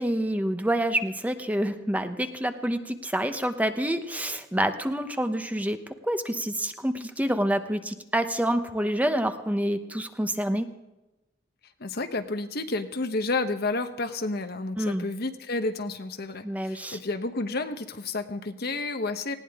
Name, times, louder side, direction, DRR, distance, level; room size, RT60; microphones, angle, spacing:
voice 1, 0.0-5.8 6.0-10.7 14.8-15.1 16.4-17.0, right 1 dB, 10° right, 8 dB, 0.9 m, -27 dB
voice 2, 11.8-19.3, left 3 dB, 60° left, 8 dB, 1.1 m, -30 dB
19.5 x 17.0 x 3.7 m, 1.0 s
head